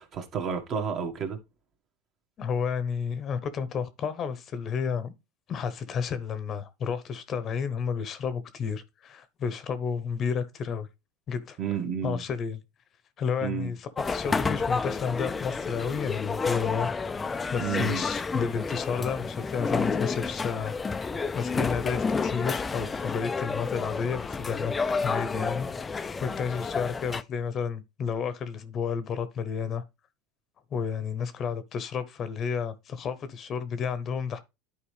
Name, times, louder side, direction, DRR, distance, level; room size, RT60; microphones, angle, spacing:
voice 1, 0.0-1.4 11.6-12.2 13.4-13.7 17.6-18.1, right 7 dB, 40° right, 1.7 m, -31 dB
voice 2, 2.4-5.1 5.5-10.9 11.3-11.6 12.0-12.6 13.2-29.8 30.7-34.4, left 6 dB, 35° left, 0.9 m, -31 dB
sound 1, 14.0-27.2, left 4 dB, 15° left, 0.4 m, -30 dB
10.0 x 4.6 x 3.3 m
supercardioid pair, 120°, 0 cm